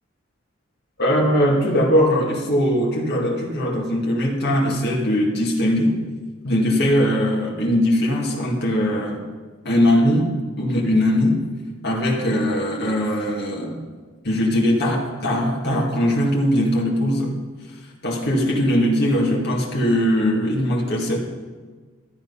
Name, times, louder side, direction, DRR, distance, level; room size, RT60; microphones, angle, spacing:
voice 1, 1.0-6.0 6.4-9.2 9.6-11.4 11.8-13.8 14.2-17.4 18.0-21.2, equal, 55° left, -2 dB, 2.1 m, -20 dB
13.0 x 9.0 x 5.5 m, 1.4 s
head